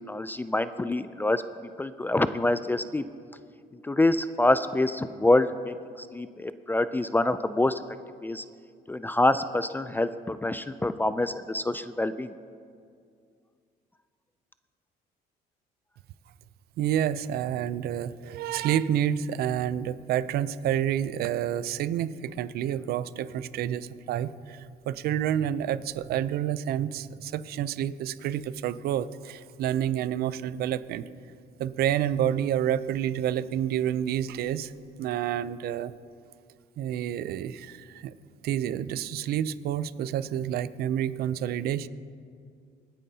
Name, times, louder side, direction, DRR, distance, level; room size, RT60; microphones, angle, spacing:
voice 1, 0.1-1.4 1.8-3.0 3.8-7.8 8.2-8.4 8.9-12.3, left 2 dB, 10° left, 12 dB, 0.3 m, -26 dB
voice 2, 16.8-31.1 31.6-34.7 35.0-35.9 36.8-38.1 38.4-41.9, right 10 dB, 70° right, 16 dB, 0.5 m, -29 dB
27.0 x 9.2 x 2.8 m, 2.2 s
cardioid pair, 110°, 17 cm